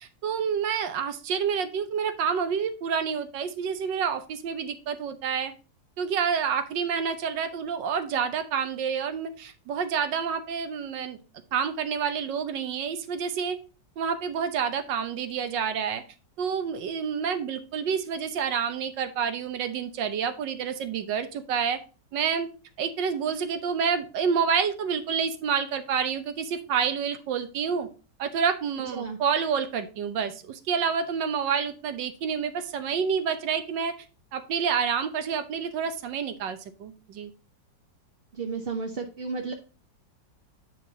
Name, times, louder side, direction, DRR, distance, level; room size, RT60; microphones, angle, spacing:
voice 1, 0.0-5.5 6.0-11.2 11.5-13.6 14.0-16.0 16.4-21.8 22.1-22.5 22.8-27.9 28.2-33.9 34.3-37.3, right 7 dB, 75° right, 10 dB, 1.5 m, -28 dB
voice 2, 38.3-39.5, right 4 dB, 55° right, 3 dB, 0.6 m, -32 dB
8.9 x 4.7 x 3.9 m, 0.33 s
omnidirectional pair, 2.0 m